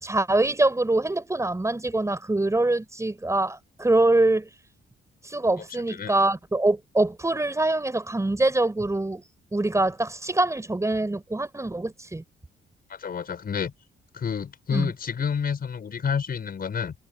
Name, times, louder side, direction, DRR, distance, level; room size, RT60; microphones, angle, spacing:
voice 1, 0.0-4.5 5.2-9.2 9.5-12.2 14.7-14.9, right 2 dB, 15° right, 5.3 m, -24 dB
voice 2, 12.9-13.7 14.1-16.9, left 7 dB, 50° left, 5.9 m, -29 dB
cardioid pair, 90°, 20 cm